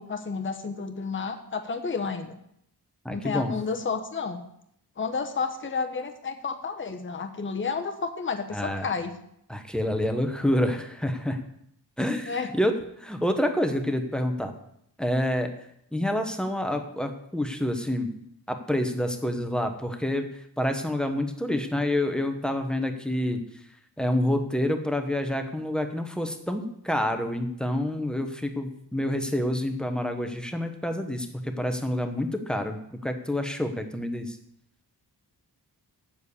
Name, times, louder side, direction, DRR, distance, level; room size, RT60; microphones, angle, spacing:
voice 1, 0.0-2.4 3.1-4.4 5.0-9.1 12.3-12.5, left 5 dB, 30° left, 5 dB, 0.8 m, -31 dB
voice 2, 3.0-3.6 8.5-8.9 9.5-11.4 12.0-14.5 15.0-15.5 15.9-18.1 18.5-23.4 24.0-34.4, left 1 dB, ahead, 6 dB, 0.9 m, -28 dB
7.3 x 7.1 x 8.3 m, 0.73 s
wide cardioid pair, 175°, 40 cm